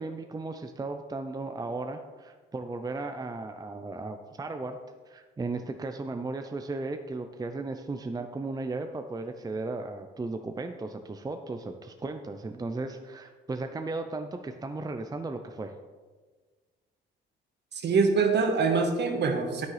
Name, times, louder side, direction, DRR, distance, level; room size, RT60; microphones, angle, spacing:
voice 1, 0.0-4.8 5.1-15.7, right 3 dB, 20° right, 6 dB, 0.5 m, -35 dB
voice 2, 17.7-19.7, right 4 dB, 60° right, 5 dB, 1.4 m, -24 dB
9.5 x 9.4 x 3.3 m, 1.4 s
cardioid pair, 90°, 20 cm